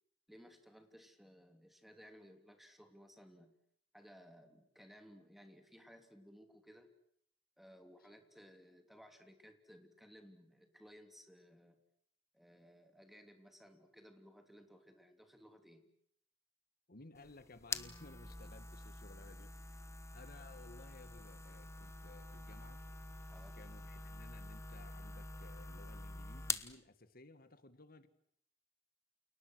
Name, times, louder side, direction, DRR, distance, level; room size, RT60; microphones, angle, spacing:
voice 1, 0.3-3.5 3.9-6.9 7.6-11.8 12.3-15.9 20.5-20.6 23.3-23.6, equal, ahead, 6 dB, 3.2 m, -60 dB
voice 2, 16.9-22.8 23.5-28.1, left 2 dB, 50° left, 11 dB, 1.9 m, -58 dB
sound 1, 17.1-26.7, left 3 dB, 15° left, 1.1 m, -46 dB
29.5 x 29.0 x 6.4 m, 0.65 s
head